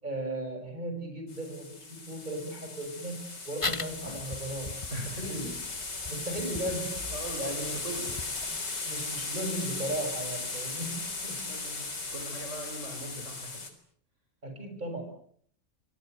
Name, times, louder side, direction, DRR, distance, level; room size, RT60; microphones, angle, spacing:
voice 1, 0.0-4.8 5.2-5.6 6.1-8.0 8.8-11.5 14.4-15.0, right 1 dB, 25° right, 5 dB, 7.2 m, -36 dB
sound 1, 1.3-13.7, left 3 dB, 70° left, 4.7 m, -37 dB
sound 2, 3.6-8.6, left 3 dB, 20° left, 1.0 m, -40 dB
voice 2, 4.9-5.6 7.1-8.2 11.4-13.7, right 1 dB, 40° right, 3 dB, 5.3 m, -41 dB
28.0 x 22.5 x 8.2 m, 0.63 s
omnidirectional pair, 1.9 m